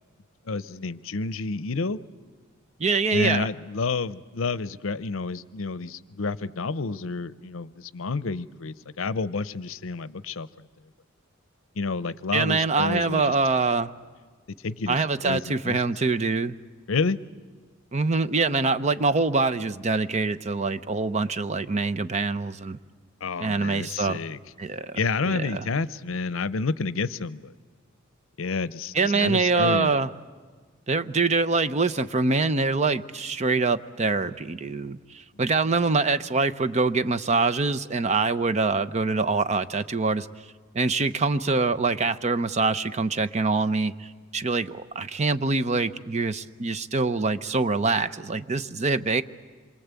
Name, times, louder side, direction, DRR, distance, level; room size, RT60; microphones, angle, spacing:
voice 1, 0.5-2.0 3.1-10.7 11.8-13.3 14.6-15.0 15.2-15.8 16.9-17.2 23.2-24.4 25.0-27.5 28.4-29.9, left 4 dB, 75° left, 17 dB, 0.7 m, -29 dB
voice 2, 2.8-3.5 12.3-13.9 14.9-16.5 17.9-22.8 23.4-24.2 24.6-25.0 25.2-25.6 28.9-30.1 30.9-40.3 40.7-49.2, right 3 dB, 35° right, 13 dB, 0.7 m, -24 dB
27.0 x 24.0 x 8.3 m, 1.5 s
head